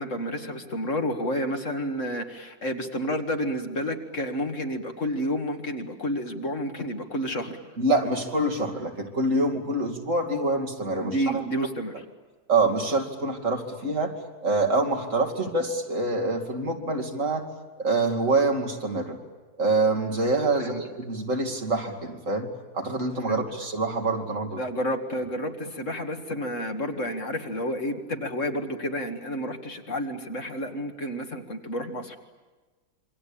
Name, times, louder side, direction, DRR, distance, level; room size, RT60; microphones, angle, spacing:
voice 1, 0.0-7.6 11.0-11.9 20.6-20.8 23.3-23.4 24.6-32.2, equal, 55° left, 5 dB, 2.3 m, -30 dB
voice 2, 7.8-11.4 12.5-14.2 14.4-17.5 17.8-19.2 19.6-22.5 22.7-24.6, right 2 dB, 55° right, 2 dB, 3.0 m, -26 dB
27.5 x 24.5 x 8.7 m, 1.3 s
omnidirectional pair, 1.6 m